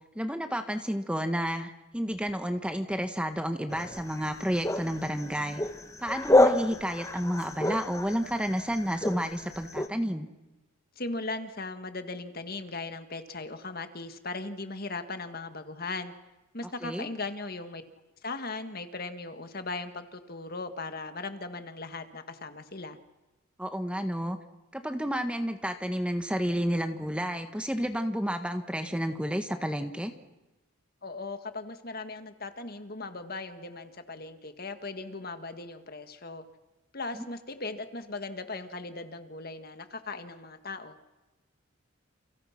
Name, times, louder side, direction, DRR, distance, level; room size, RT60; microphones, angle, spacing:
voice 1, 0.1-5.6 6.0-10.3 16.8-17.1 23.6-24.4 24.7-30.1, equal, 5° right, 7 dB, 1.5 m, -31 dB
sound 1, 3.7-9.9, left 1 dB, 15° left, 1.2 m, -28 dB
voice 2, 11.0-16.1 16.5-17.8 18.2-23.0 31.0-36.4 36.9-41.0, left 3 dB, 45° left, 8 dB, 1.8 m, -38 dB
30.0 x 30.0 x 6.0 m, 1.1 s
head